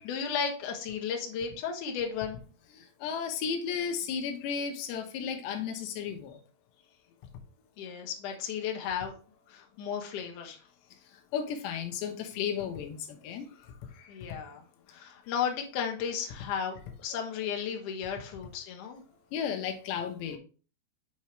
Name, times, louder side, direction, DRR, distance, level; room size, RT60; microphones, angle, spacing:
voice 1, 0.0-2.4 7.8-9.1 9.5-10.6 13.5-14.6 14.9-19.0, left 7 dB, 65° left, 2 dB, 2.2 m, -34 dB
voice 2, 2.8-6.4 11.3-13.5 19.3-20.4, left 7 dB, 85° left, 5 dB, 3.1 m, -34 dB
7.1 x 5.6 x 3.1 m, 0.37 s
omnidirectional pair, 4.8 m